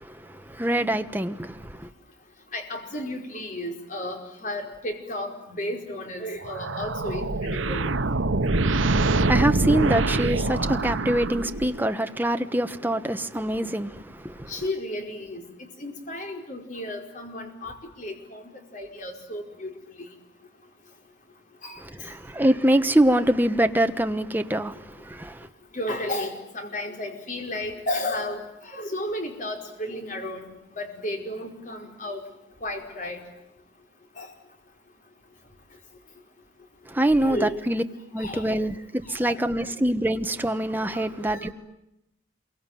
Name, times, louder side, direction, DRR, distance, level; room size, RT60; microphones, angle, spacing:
voice 1, 0.0-1.9 8.8-14.5 21.8-25.5 36.9-37.8 38.1-41.5, right 1 dB, 10° right, 1.2 m, -25 dB
voice 2, 2.5-7.9 10.5-10.6 14.5-15.4 15.8-18.4 18.7-19.8 21.6-21.8 25.7-28.4 28.6-32.2 32.6-33.2 34.2-34.3 37.1-37.6 38.2-38.7 39.2-39.7 40.9-41.5, left 1 dB, 40° left, 5.0 m, -33 dB
sound 1, 6.4-11.9, right 2 dB, 80° right, 1.1 m, -25 dB
27.5 x 23.5 x 9.2 m
head